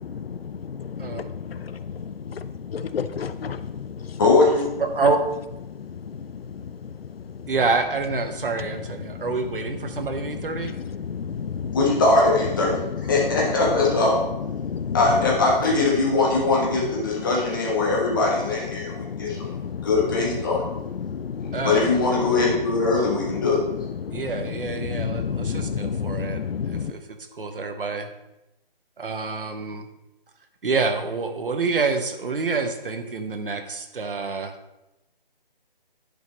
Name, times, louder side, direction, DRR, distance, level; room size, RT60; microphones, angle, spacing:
voice 1, 2.7-3.6 11.1-11.8 14.6-15.0 19.5-19.9 21.0-21.5 24.0-24.2 24.9-26.9, left 6 dB, 80° left, 12 dB, 0.6 m, -29 dB
voice 2, 4.2-4.7 11.7-12.7 13.0-14.2 14.9-20.6 21.6-23.6, left 3 dB, 20° left, -3 dB, 1.3 m, -21 dB
voice 3, 4.8-5.2 7.5-10.7 21.5-21.9 24.1-27.0 27.3-28.1 29.0-29.9 30.6-34.6, right 4 dB, 65° right, 7 dB, 1.1 m, -27 dB
10.0 x 5.3 x 3.1 m, 0.92 s
hypercardioid pair, 170°, 29 cm